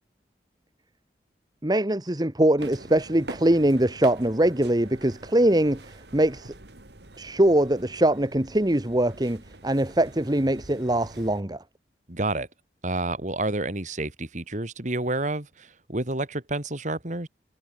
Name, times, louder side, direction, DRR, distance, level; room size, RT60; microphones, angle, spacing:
voice 1, 1.6-6.5 7.2-11.6, right 1 dB, 25° right, 1.4 m, -22 dB
sound 1, 2.6-11.4, right 2 dB, 70° right, 2.7 m, -45 dB
voice 2, 12.1-12.5 12.8-17.3, right 2 dB, 45° right, 2.6 m, -29 dB
head